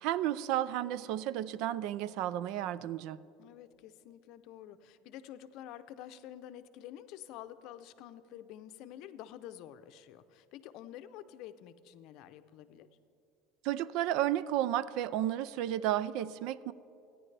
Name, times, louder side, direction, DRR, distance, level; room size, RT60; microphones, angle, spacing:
voice 1, 0.0-3.2 13.6-16.7, right 12 dB, 60° right, 18 dB, 0.4 m, -32 dB
voice 2, 3.4-12.9, left 11 dB, 60° left, 11 dB, 0.6 m, -49 dB
28.0 x 10.0 x 3.3 m, 2.7 s
cardioid pair, 145°, 0 cm